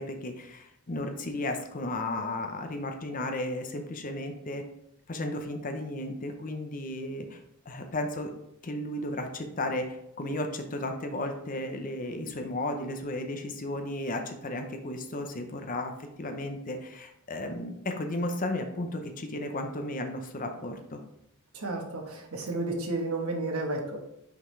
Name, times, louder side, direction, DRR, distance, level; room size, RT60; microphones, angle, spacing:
voice 1, 0.0-4.6 5.1-7.4 7.7-8.3 8.6-15.9 16.2-21.0, left 1 dB, 35° left, 5 dB, 0.7 m, -34 dB
voice 2, 21.5-24.0, right 2 dB, 75° right, 2 dB, 1.2 m, -32 dB
5.8 x 5.2 x 3.2 m, 0.82 s
head